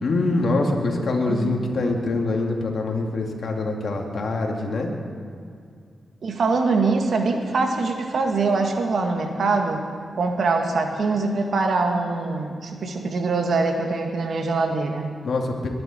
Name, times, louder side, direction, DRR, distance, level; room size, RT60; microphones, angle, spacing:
voice 1, 0.0-4.9 15.2-15.7, left 2 dB, 65° left, 1 dB, 2.5 m, -24 dB
voice 2, 1.1-1.6 6.2-9.8 10.1-15.1, right 3 dB, 70° right, 3 dB, 1.9 m, -23 dB
23.0 x 11.0 x 4.5 m, 2.3 s
cardioid pair, 60°, 0 cm